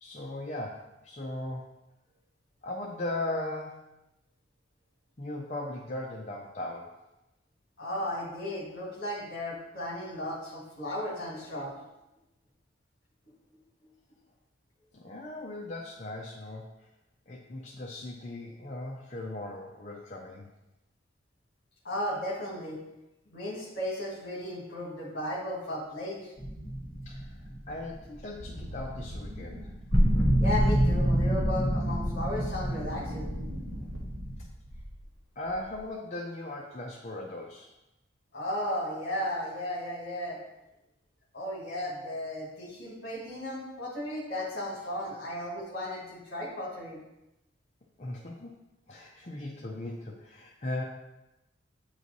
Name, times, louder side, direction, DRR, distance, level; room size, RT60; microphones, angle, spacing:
voice 1, 0.0-1.7 2.6-3.8 5.2-7.0 14.9-16.9 17.3-20.5 27.0-29.7 35.4-37.7 48.0-48.5 48.9-50.8, left 1 dB, 35° left, -2 dB, 0.6 m, -38 dB
voice 2, 7.8-11.7 21.8-22.8 23.3-26.3 30.4-33.3 38.3-40.4 41.3-47.0, left 1 dB, 50° left, -2 dB, 1.7 m, -35 dB
sound 1, 26.4-28.3 29.9-34.4, equal, 10° left, 0.9 m, -27 dB
Wind, 28.3-35.1 35.5-35.9, equal, 75° right, 1.2 m, -41 dB
8.3 x 3.2 x 4.0 m, 0.95 s
head